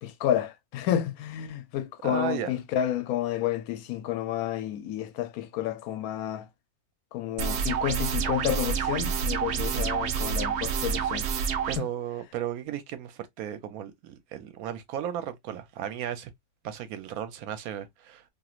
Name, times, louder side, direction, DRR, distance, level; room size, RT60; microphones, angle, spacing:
voice 1, 0.0-6.5 7.1-11.3 11.8-11.9, left 11 dB, 80° left, 1.0 m, -30 dB
voice 2, 2.0-2.5 9.7-9.9 11.7-16.3 16.6-18.2, right 10 dB, 80° right, 1.1 m, -35 dB
sound 1, 7.4-11.8, right 7 dB, 65° right, 0.7 m, -28 dB
3.0 x 2.6 x 2.3 m
omnidirectional pair, 1.5 m